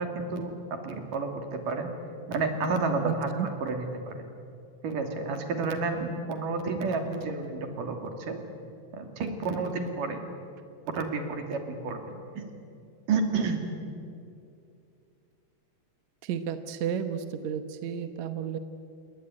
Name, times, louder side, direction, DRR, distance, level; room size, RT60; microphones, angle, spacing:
voice 1, 0.0-1.9 2.3-4.2 4.8-8.4 8.9-10.2 10.9-12.4 13.1-13.6, right 4 dB, 85° right, 5 dB, 4.2 m, -30 dB
voice 2, 3.0-3.5 16.2-18.6, right 8 dB, 65° right, 9 dB, 2.3 m, -32 dB
28.5 x 20.5 x 9.7 m, 2.6 s
omnidirectional pair, 3.7 m